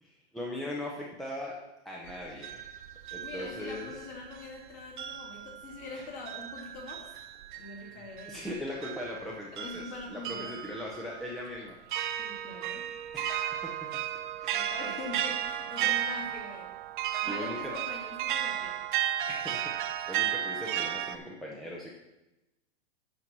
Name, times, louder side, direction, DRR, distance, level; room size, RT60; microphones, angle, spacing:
voice 1, 0.0-1.6 1.8-2.7 3.1-3.9 5.9-6.0 8.3-9.8 10.1-11.8 13.1-13.9 14.4-14.7 15.8-15.9 17.2-17.7 19.3-21.9, left 1 dB, ahead, -3 dB, 0.6 m, -39 dB
sound 1, 2.1-4.6 5.0-21.2, right 11 dB, 45° right, 0.6 m, -35 dB
voice 2, 3.2-7.1 7.6-8.5 9.5-10.6 12.2-12.9 14.5-16.7 17.2-18.8, left 2 dB, 40° left, -1 dB, 2.8 m, -43 dB
11.0 x 4.6 x 6.0 m, 0.96 s
supercardioid pair, 160°, 34 cm